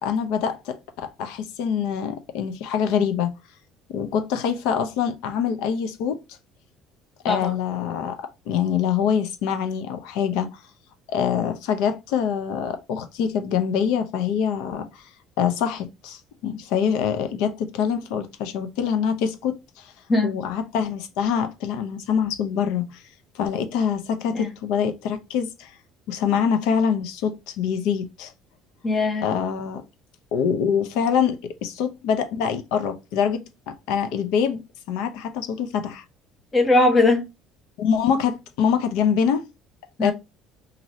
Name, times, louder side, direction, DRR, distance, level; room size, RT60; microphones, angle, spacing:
voice 1, 0.0-3.3 3.9-6.2 7.2-10.6 11.1-15.1 15.4-19.9 20.2-23.0 23.3-25.7 26.1-28.3 29.2-29.8 30.3-34.6 34.9-36.0 37.8-39.5 40.0-40.1, left 7 dB, 85° left, 0.5 m, -25 dB
voice 2, 28.8-29.3 36.5-37.2 40.0-40.1, left 2 dB, 20° left, 0.6 m, -19 dB
2.6 x 2.6 x 3.0 m
cardioid pair, 170°, 0 cm